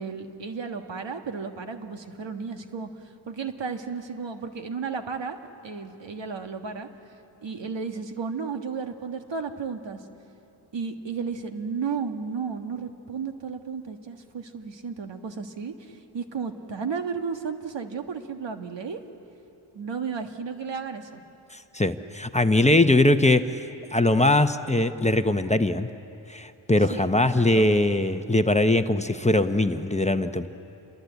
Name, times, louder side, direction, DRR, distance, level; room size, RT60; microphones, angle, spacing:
voice 1, 0.0-2.9 3.3-5.4 5.6-6.9 7.4-10.0 10.7-19.0 19.7-21.2 26.9-27.1 27.3-27.7, right 5 dB, 70° right, 6 dB, 1.7 m, -33 dB
voice 2, 21.7-23.4 23.9-25.9 26.3-30.5, left 1 dB, 15° left, 8 dB, 0.9 m, -21 dB
28.0 x 22.0 x 8.2 m, 2.8 s
cardioid pair, 60°, 46 cm